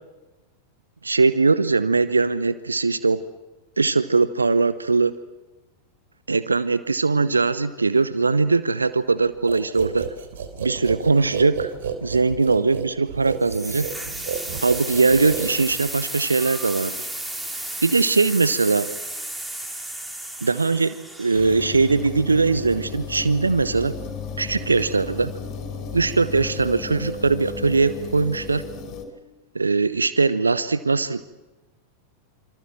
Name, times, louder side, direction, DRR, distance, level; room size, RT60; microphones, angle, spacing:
voice 1, 1.0-3.2 3.8-5.1 6.3-10.1 10.6-11.7 12.0-13.9 14.6-16.9 17.8-18.9 20.4-24.0 24.4-25.3 25.9-28.6 29.5-31.2, right 4 dB, 80° right, 15 dB, 0.9 m, -20 dB
sound 1, 9.5-16.0, right 7 dB, 60° right, 3.6 m, -31 dB
sound 2, 13.4-22.3, right 1 dB, 10° right, 3.4 m, -33 dB
sound 3, 21.3-29.1, left 4 dB, 35° left, 5.2 m, -34 dB
27.0 x 26.5 x 7.6 m, 1.1 s
figure-of-eight pair, 90°, 0 cm